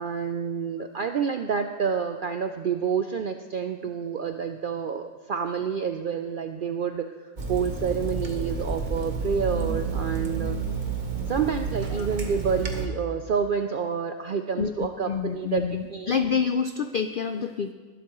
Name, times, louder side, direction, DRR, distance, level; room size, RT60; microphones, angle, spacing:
voice 1, 0.0-10.6 11.3-15.6 15.9-16.2, right 6 dB, 65° right, 6 dB, 0.5 m, -28 dB
Water tap faucet / Sink (filling or washing), 7.4-12.9, right 4 dB, 35° right, 1.2 m, -30 dB
voice 2, 14.6-17.7, left 6 dB, 70° left, 8 dB, 0.5 m, -28 dB
20.0 x 12.0 x 3.0 m, 1.4 s
omnidirectional pair, 1.4 m